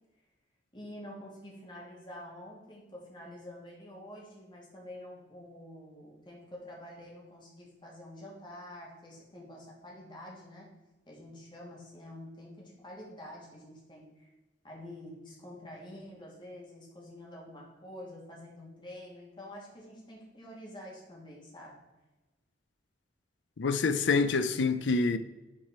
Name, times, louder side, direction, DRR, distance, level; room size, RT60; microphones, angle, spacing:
voice 1, 0.7-10.7 11.1-14.3 14.6-21.8, left 1 dB, 25° left, 2.5 m, -47 dB
voice 2, 23.6-25.2, left 4 dB, 85° left, 0.5 m, -26 dB
10.0 x 5.0 x 4.4 m
head